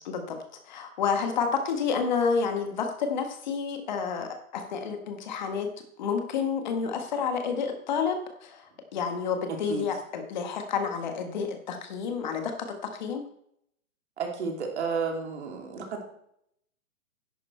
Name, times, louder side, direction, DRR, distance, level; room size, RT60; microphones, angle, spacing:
voice 1, 0.0-0.4 0.6-13.3, left 6 dB, 35° left, 5 dB, 1.4 m, -30 dB
voice 2, 14.2-16.0, right 5 dB, 50° right, 2 dB, 2.7 m, -32 dB
11.0 x 8.7 x 4.4 m, 0.72 s
hypercardioid pair, 170°, 41 cm